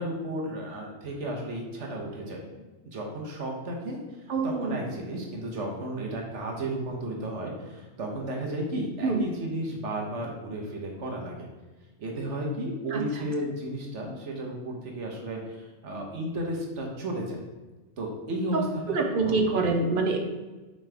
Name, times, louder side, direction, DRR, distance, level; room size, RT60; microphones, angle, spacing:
voice 1, 0.0-4.0 4.4-11.5 12.0-17.4 18.0-19.3, right 1 dB, 80° right, 0 dB, 1.5 m, -33 dB
voice 2, 4.3-4.8 9.0-9.2 12.9-13.2 18.5-18.6 18.9-20.2, right 3 dB, 50° right, 3 dB, 0.9 m, -26 dB
7.3 x 4.0 x 3.4 m, 1.2 s
omnidirectional pair, 1.2 m